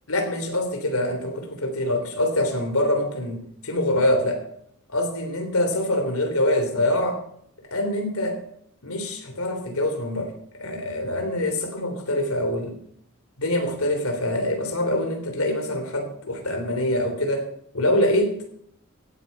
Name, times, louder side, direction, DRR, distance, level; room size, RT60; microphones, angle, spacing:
voice 1, 0.1-4.4 4.9-7.2 7.7-8.4 8.8-12.7 13.4-17.5 17.7-18.4, left 1 dB, 75° left, 5 dB, 3.4 m, -25 dB
16.5 x 9.8 x 5.4 m, 0.70 s
head